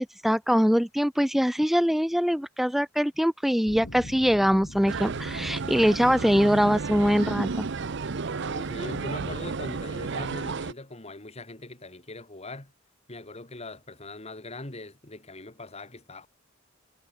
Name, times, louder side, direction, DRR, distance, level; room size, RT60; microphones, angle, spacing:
voice 1, 0.0-7.6, equal, ahead, 0.6 m, -23 dB
sound 1, 3.7-8.9 9.6-9.7, left 1 dB, 85° left, 3.9 m, -46 dB
sound 2, 4.9-10.7, right 4 dB, 60° right, 0.7 m, -32 dB
voice 2, 8.4-12.7 13.1-16.3, left 2 dB, 30° left, 2.8 m, -41 dB
head